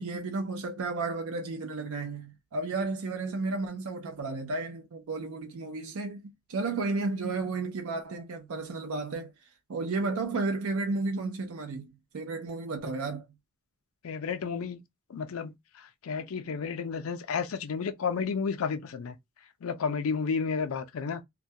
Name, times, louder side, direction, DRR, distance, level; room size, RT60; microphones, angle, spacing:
voice 1, 0.0-9.3 9.7-13.3, right 3 dB, 85° right, 0.5 m, -33 dB
voice 2, 14.0-14.8 15.1-15.5 16.0-19.2 19.6-21.2, left 5 dB, 85° left, 0.4 m, -31 dB
2.2 x 2.1 x 2.6 m
head